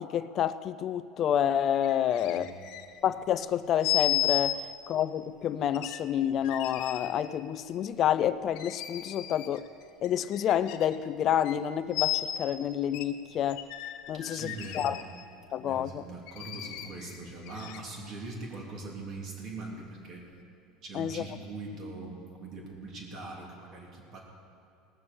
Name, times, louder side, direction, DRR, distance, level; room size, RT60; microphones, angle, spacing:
voice 1, 0.0-2.5 3.0-9.6 10.0-13.7 14.1-15.0 15.5-16.0 20.9-21.2, left 10 dB, 45° left, 14 dB, 0.4 m, -29 dB
sound 1, 1.8-3.1 3.8-4.6 5.7-7.1 8.5-9.7 10.0-11.0 11.4-11.6 11.9-12.4 12.9-13.0 13.5-15.2 16.3-18.1 18.7-18.8, left 14 dB, 70° left, 0.9 m, -34 dB
voice 2, 14.1-15.0 15.6-20.2 20.8-24.2, right 3 dB, 50° right, -1 dB, 3.2 m, -42 dB
18.5 x 6.9 x 6.9 m, 2.7 s
supercardioid pair, 120°, 0 cm